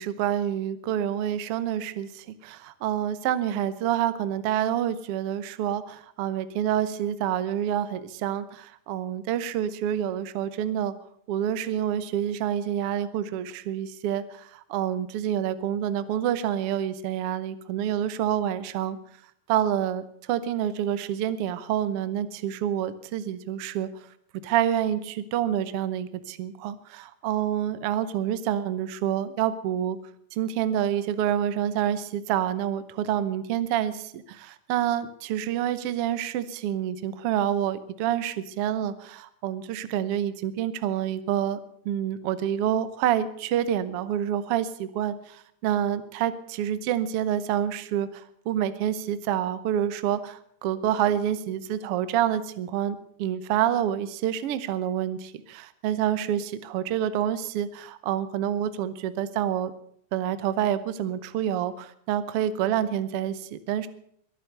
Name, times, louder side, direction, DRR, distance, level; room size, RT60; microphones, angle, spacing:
voice 1, 0.0-10.9 11.3-19.0 19.5-23.9 24.4-30.0 30.3-41.6 41.8-59.7 60.1-63.9, right 10 dB, 65° right, 14 dB, 1.7 m, -27 dB
22.5 x 9.5 x 6.7 m, 0.66 s
omnidirectional pair, 3.3 m